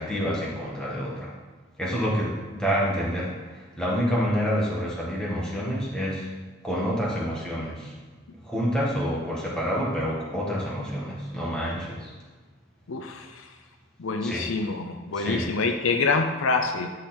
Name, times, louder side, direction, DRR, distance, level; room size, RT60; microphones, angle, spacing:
voice 1, 0.0-1.3 1.8-3.3 3.5-6.3 6.6-8.0 8.5-12.1 14.2-14.4 15.2-15.5, equal, 5° left, -6 dB, 1.6 m, -28 dB
voice 2, 12.9-13.5 14.0-16.9, left 4 dB, 75° left, 5 dB, 0.6 m, -26 dB
10.0 x 4.0 x 4.3 m, 1.4 s
head